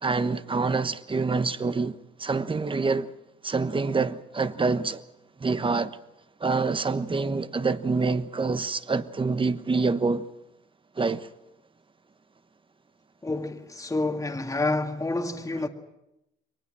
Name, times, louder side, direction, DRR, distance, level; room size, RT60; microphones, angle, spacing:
voice 1, 0.0-3.1 3.4-5.0 5.4-6.0 6.4-10.3 11.0-11.3, right 4 dB, 25° right, 1.2 m, -26 dB
voice 2, 13.2-15.7, left 2 dB, 15° left, 2.1 m, -28 dB
23.5 x 19.5 x 7.6 m
cardioid pair, 90°, 20 cm